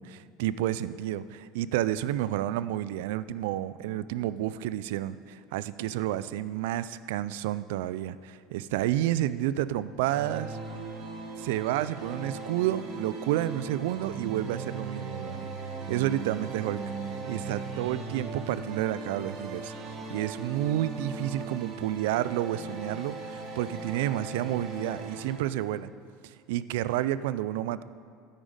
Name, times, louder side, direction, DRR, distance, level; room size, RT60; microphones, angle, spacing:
voice 1, 0.0-10.6 11.3-15.5 15.9-16.8 17.3-19.7 20.1-25.9 26.2-27.8, right 13 dB, 80° right, 16 dB, 0.3 m, -30 dB
sound 1, 10.0-25.4, right 4 dB, 50° right, 1.4 m, -38 dB
9.0 x 8.9 x 5.1 m, 2.2 s
supercardioid pair, 130°, 0 cm